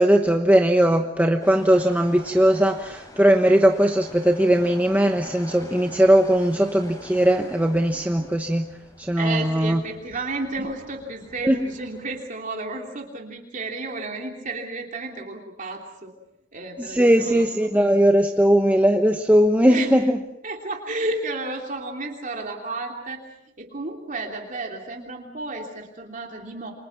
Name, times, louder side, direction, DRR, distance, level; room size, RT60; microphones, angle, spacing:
voice 1, 0.0-8.7 9.0-9.8 11.4-11.6 16.9-20.2, right 1 dB, 10° right, 4 dB, 1.1 m, -19 dB
sound 1, 1.4-12.2, left 1 dB, 20° left, 5.4 m, -46 dB
voice 2, 9.1-16.1 16.5-17.7 19.7-19.9 20.4-23.2 23.6-26.7, right 2 dB, 45° right, 1 dB, 3.1 m, -32 dB
29.0 x 25.0 x 6.0 m, 0.85 s
head